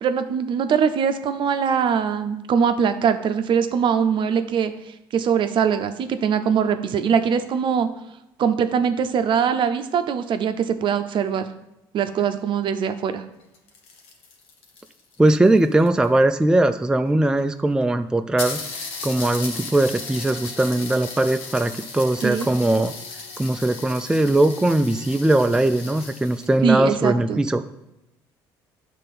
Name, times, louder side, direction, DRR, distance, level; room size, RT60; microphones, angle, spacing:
voice 1, 0.0-7.9 8.4-11.5 11.9-13.2 22.2-22.5 26.6-27.4, right 7 dB, 55° right, 9 dB, 0.6 m, -22 dB
sound 1, 13.4-16.2 17.1-17.2 17.4-17.5 17.8-17.9 18.4-26.6, left 4 dB, 75° left, 1.1 m, -36 dB
voice 2, 15.2-18.6 19.0-22.9 23.4-27.6, right 1 dB, 5° right, 9 dB, 0.3 m, -20 dB
6.6 x 3.4 x 5.4 m, 0.90 s
supercardioid pair, 70°, 10 cm